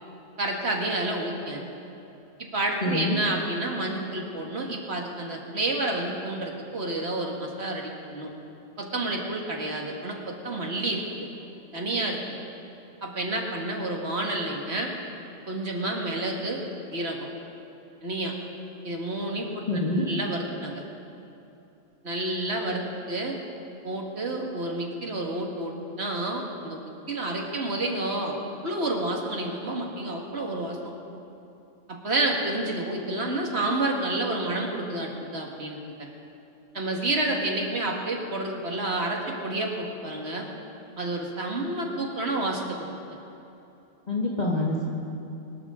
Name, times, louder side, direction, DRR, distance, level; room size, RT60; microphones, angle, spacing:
voice 1, 0.4-1.6 2.5-8.3 8.8-11.0 11.7-12.2 13.0-14.9 15.5-16.6 16.9-17.3 18.0-18.3 18.8-19.5 19.9-20.8 22.0-23.4 23.8-28.4 28.6-30.8 31.9-35.8 36.7-40.5 41.0-42.9, right 2 dB, 55° right, 0 dB, 2.0 m, -29 dB
voice 2, 2.8-3.2 19.7-20.1 44.1-44.8, left 2 dB, 35° left, -4 dB, 1.5 m, -26 dB
23.0 x 13.5 x 3.7 m, 2.9 s
omnidirectional pair, 1.4 m